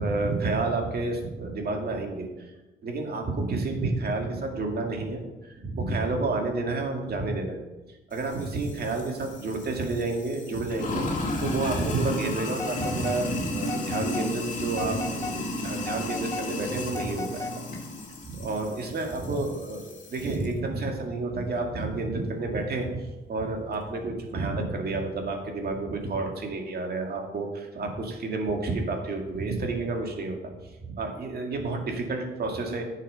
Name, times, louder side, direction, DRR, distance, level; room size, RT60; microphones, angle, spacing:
voice 1, 0.0-2.3 2.8-7.6 8.1-17.6 18.3-30.5 30.8-32.8, right 3 dB, 50° right, 2 dB, 2.2 m, -30 dB
Sink (filling or washing), 8.1-20.5, left 1 dB, 40° left, 2.2 m, -34 dB
Telephone, 12.5-13.2 13.6-14.3 14.7-15.4 15.8-17.8, left 3 dB, 15° left, 0.9 m, -37 dB
10.0 x 6.6 x 5.5 m, 1.1 s
cardioid pair, 90°, 20 cm